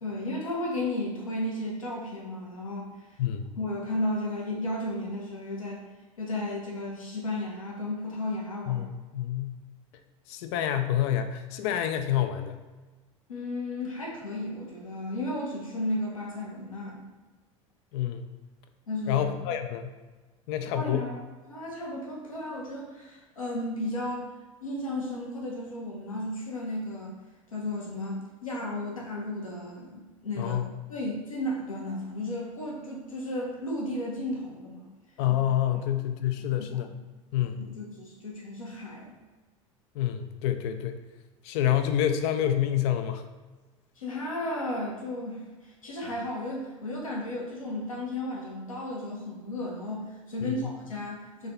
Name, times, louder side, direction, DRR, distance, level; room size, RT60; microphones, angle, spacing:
voice 1, 0.0-3.1 3.6-5.8 6.2-8.8 13.3-17.0 18.9-19.3 20.7-21.2 21.5-24.3 24.6-27.1 27.5-34.8 35.3-35.4 36.6-36.8 37.7-39.2 44.0-51.5, left 1 dB, 80° left, -3 dB, 1.1 m, -34 dB
voice 2, 8.7-9.6 10.3-12.6 17.9-18.3 19.1-19.9 20.5-21.1 30.4-30.6 35.2-36.9 37.3-37.6 40.0-41.0 41.4-43.2 50.4-50.7, left 11 dB, 50° left, 8 dB, 0.4 m, -28 dB
3.8 x 3.4 x 3.8 m, 1.2 s
figure-of-eight pair, 75°, 17 cm